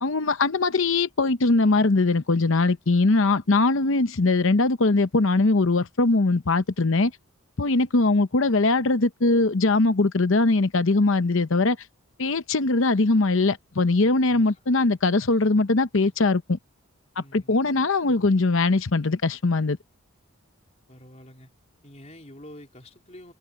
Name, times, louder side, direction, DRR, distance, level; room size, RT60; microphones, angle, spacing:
voice 1, 0.0-7.1 7.6-11.8 12.2-16.6 17.3-19.8, left 3 dB, 60° left, 0.8 m, -21 dB
voice 2, 17.2-17.7 20.9-21.5 21.8-23.3, left 1 dB, 30° left, 4.0 m, -47 dB
head